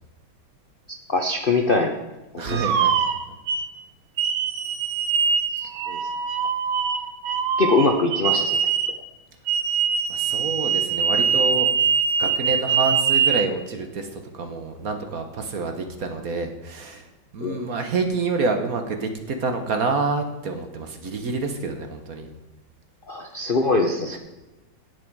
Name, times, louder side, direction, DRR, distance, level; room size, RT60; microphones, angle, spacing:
voice 1, 1.1-2.0 2.3-2.6 5.5-6.0 7.6-8.6 17.4-17.6 23.1-24.2, left 3 dB, 60° left, 3 dB, 0.5 m, -23 dB
voice 2, 2.4-3.0 3.3-3.4 10.1-11.7 12.2-17.1 17.3-22.3 24.1-24.2, right 3 dB, 50° right, 6 dB, 1.3 m, -27 dB
sound 1, 2.5-3.7 4.2-9.0 9.5-13.5, right 7 dB, 80° right, 1.7 m, -23 dB
17.5 x 6.3 x 4.7 m, 1.1 s
omnidirectional pair, 2.2 m